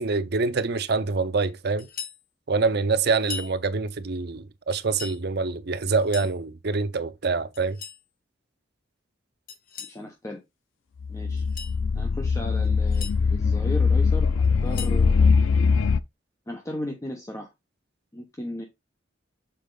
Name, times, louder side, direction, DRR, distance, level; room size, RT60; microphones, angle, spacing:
voice 1, 0.0-1.9 2.5-7.8, right 4 dB, 55° right, 0.7 m, -25 dB
sound 1, 1.8-2.2 3.2-3.5 4.7-5.2 5.9-6.4 7.5-8.0 9.5-10.0 11.3-11.8 12.6-13.2 14.4-15.0, left 7 dB, 45° left, 1.1 m, -39 dB
voice 2, 9.8-10.4 11.1-11.4 11.9-15.3 16.5-17.5 18.1-18.7, left 1 dB, 15° left, 0.9 m, -36 dB
sound 2, 11.0-16.0, left 5 dB, 80° left, 0.4 m, -22 dB
6.9 x 4.5 x 3.7 m
head